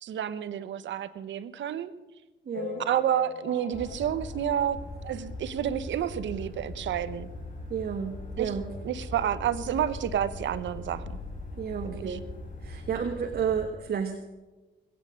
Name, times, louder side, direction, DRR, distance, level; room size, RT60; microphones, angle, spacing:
voice 1, 0.0-1.9 2.8-4.8 5.0-7.3 8.4-8.5 8.8-11.2 11.8-12.2, right 10 dB, 70° right, 14 dB, 1.1 m, -30 dB
voice 2, 2.4-2.8 7.7-8.6 11.6-12.3 12.6-14.2, right 7 dB, 50° right, 4 dB, 1.5 m, -31 dB
sound 1, 2.5-5.4 5.9-6.0 6.1-6.3 6.6-6.7 7.6-7.7 8.1-8.2, left 7 dB, 55° left, 2.2 m, -42 dB
sound 2, 3.7-13.7, left 2 dB, 40° left, 4.5 m, -40 dB
21.0 x 9.2 x 6.4 m, 1.1 s
cardioid pair, 90°, 20 cm